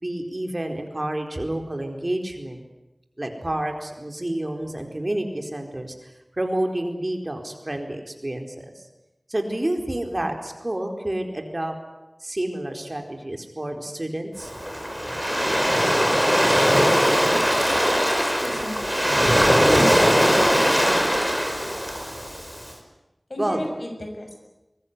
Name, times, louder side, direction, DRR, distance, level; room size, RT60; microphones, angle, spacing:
voice 1, 0.0-2.6 3.2-8.8 9.3-11.7 12.2-14.5 23.4-23.7, right 1 dB, 35° right, 3 dB, 4.5 m, -29 dB
Waves surf, 14.4-22.6, equal, 5° left, 5.6 m, -20 dB
voice 2, 18.2-18.8 20.0-20.6 23.3-24.4, left 1 dB, 65° left, 3 dB, 6.5 m, -34 dB
24.0 x 22.0 x 9.9 m, 1.0 s
wide cardioid pair, 55°, 0 cm